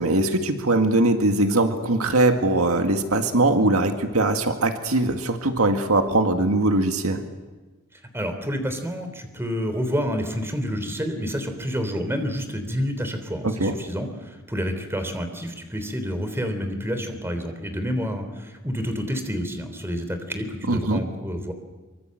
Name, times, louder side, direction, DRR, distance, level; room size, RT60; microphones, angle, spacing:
voice 1, 0.0-7.2 13.4-13.7 20.7-21.0, right 2 dB, 80° right, 5 dB, 2.0 m, -21 dB
voice 2, 8.1-21.5, equal, 10° right, 7 dB, 3.4 m, -29 dB
24.5 x 24.5 x 7.8 m, 1.3 s
head